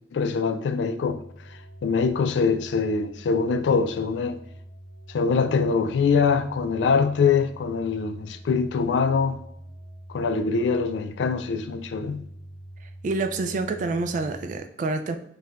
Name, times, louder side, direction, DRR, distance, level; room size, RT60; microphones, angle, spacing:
voice 1, 0.1-4.4 5.1-9.4 10.1-12.3, left 5 dB, 85° left, 0.3 m, -24 dB
sound 1, 1.0-14.6, right 1 dB, 10° right, 1.4 m, -45 dB
voice 2, 13.0-15.2, right 3 dB, 45° right, 0.3 m, -27 dB
4.4 x 2.2 x 2.4 m
head